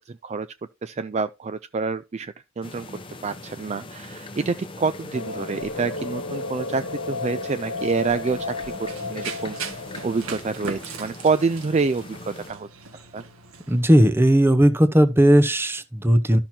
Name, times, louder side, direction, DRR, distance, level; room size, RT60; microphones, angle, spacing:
voice 1, 0.1-0.5 0.8-2.9 3.2-9.6 10.0-12.7 13.1-13.2, right 4 dB, 30° right, 0.3 m, -27 dB
sound 1, 2.6-12.5, left 2 dB, 25° left, 0.9 m, -41 dB
sound 2, 5.1-10.9, left 3 dB, 60° left, 1.3 m, -33 dB
Run, 8.2-13.8, right 5 dB, 85° right, 1.8 m, -39 dB
voice 2, 13.7-16.4, right 1 dB, 10° right, 0.8 m, -17 dB
13.5 x 5.9 x 2.8 m
head